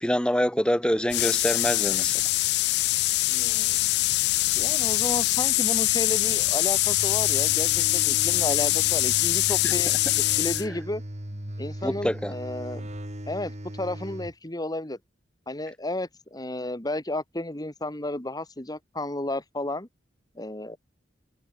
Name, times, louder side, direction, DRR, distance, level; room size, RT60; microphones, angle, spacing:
voice 1, 0.0-2.2 9.6-9.7 11.8-12.3, equal, 5° left, 1.6 m, -25 dB
sound 1, 1.1-10.6, left 19 dB, 60° left, 0.3 m, -23 dB
voice 2, 3.3-3.8 4.6-10.0 10.3-11.0 11.6-12.9 13.3-15.0 15.5-19.9 20.4-20.8, left 1 dB, 20° left, 2.3 m, -32 dB
sound 2, 6.7-14.3, equal, 40° right, 3.5 m, -38 dB
head